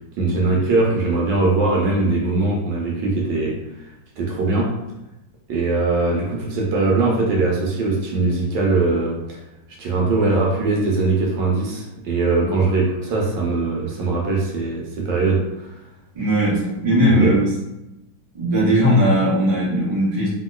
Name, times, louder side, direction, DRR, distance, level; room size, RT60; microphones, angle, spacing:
voice 1, 0.2-3.6 4.2-4.7 5.5-9.4 9.8-15.7 17.1-17.3, right 3 dB, 75° right, -2 dB, 1.2 m, -21 dB
voice 2, 16.1-17.5 18.3-20.3, equal, 35° right, -8 dB, 0.5 m, -18 dB
3.0 x 2.8 x 2.2 m, 0.93 s
omnidirectional pair, 2.2 m